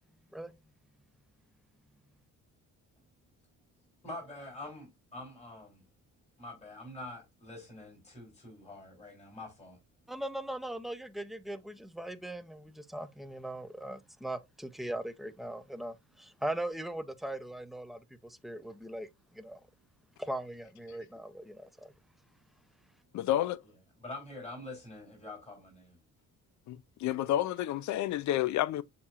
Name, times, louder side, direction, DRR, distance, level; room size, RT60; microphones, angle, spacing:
voice 1, 4.0-5.8 6.4-9.8 24.0-26.0, left 2 dB, 20° left, 3.1 m, -45 dB
voice 2, 10.1-19.1 19.3-19.6 20.2-21.9, right 1 dB, ahead, 0.5 m, -39 dB
voice 3, 23.1-23.6 26.7-28.8, left 13 dB, 60° left, 0.4 m, -30 dB
7.0 x 2.8 x 2.4 m
cardioid pair, 90°, 33 cm